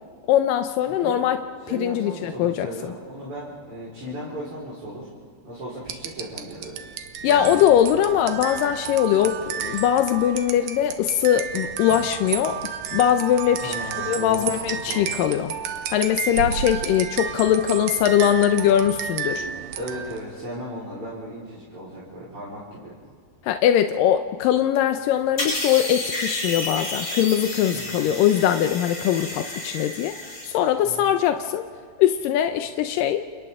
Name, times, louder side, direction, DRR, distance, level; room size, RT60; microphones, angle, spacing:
voice 1, 0.3-1.4 1.7-2.7 7.2-12.6 12.9-13.8 14.1-15.5 15.9-19.5 23.4-30.2 30.4-31.6 32.0-33.2, left 10 dB, 80° left, 7 dB, 2.0 m, -21 dB
voice 2, 0.9-1.2 1.7-5.1 5.4-6.8 7.3-7.6 7.9-8.0 13.6-15.2 19.7-23.0 27.7-28.2 30.8-31.1, right 1 dB, 35° right, -8 dB, 5.0 m, -36 dB
sound 1, 5.9-20.3, right 8 dB, 70° right, 2.5 m, -32 dB
sound 2, 25.4-30.5, left 1 dB, 25° left, 4.8 m, -31 dB
29.5 x 29.0 x 3.7 m, 2.1 s
omnidirectional pair, 4.8 m